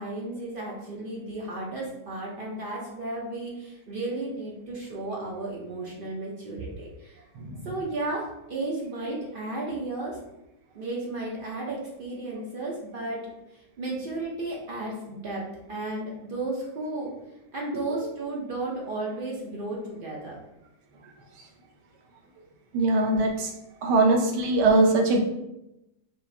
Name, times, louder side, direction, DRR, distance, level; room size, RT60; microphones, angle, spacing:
voice 1, 0.0-7.2 7.6-10.2 10.7-13.2 13.8-17.1 17.5-20.4, right 2 dB, 60° right, -4 dB, 0.5 m, -33 dB
voice 2, 7.3-7.7 17.9-18.0 22.7-23.5 23.8-25.2, right 2 dB, 80° right, 2 dB, 1.3 m, -22 dB
4.9 x 2.5 x 2.6 m, 0.90 s
omnidirectional pair, 1.8 m